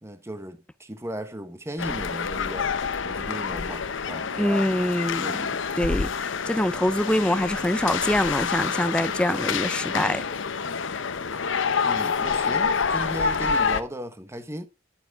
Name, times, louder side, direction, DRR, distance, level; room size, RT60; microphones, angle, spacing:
voice 1, 0.0-2.7 3.0-5.4 11.8-14.7, equal, 15° right, 1.1 m, -36 dB
sound 1, 1.8-13.8, left 5 dB, 65° left, 0.8 m, -27 dB
voice 2, 4.4-5.5 5.8-10.2, left 1 dB, 5° left, 0.5 m, -24 dB
11.0 x 7.1 x 3.5 m
head